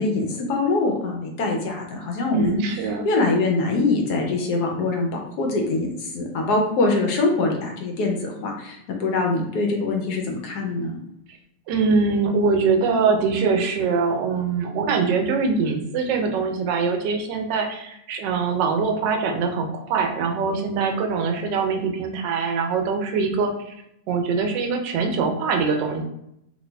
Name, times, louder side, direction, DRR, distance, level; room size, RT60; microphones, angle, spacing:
voice 1, 0.0-2.6 3.0-5.9 6.1-10.9, left 3 dB, 70° left, 1 dB, 1.1 m, -23 dB
voice 2, 2.3-3.0 11.7-23.5 24.1-26.0, right 4 dB, 80° right, 3 dB, 1.2 m, -23 dB
3.1 x 2.6 x 3.3 m, 0.79 s
omnidirectional pair, 1.9 m